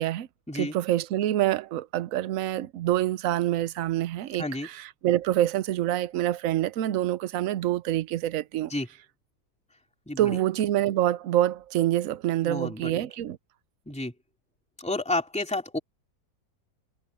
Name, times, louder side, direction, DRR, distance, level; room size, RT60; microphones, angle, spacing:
voice 1, 0.5-8.7 10.2-13.4, right 13 dB, 65° right, 0.9 m, -26 dB
voice 2, 4.4-4.7 8.7-8.9 10.1-10.4 12.4-13.0 13.9-14.1 14.8-15.8, left 2 dB, 5° left, 3.4 m, -30 dB
omnidirectional pair, 1.7 m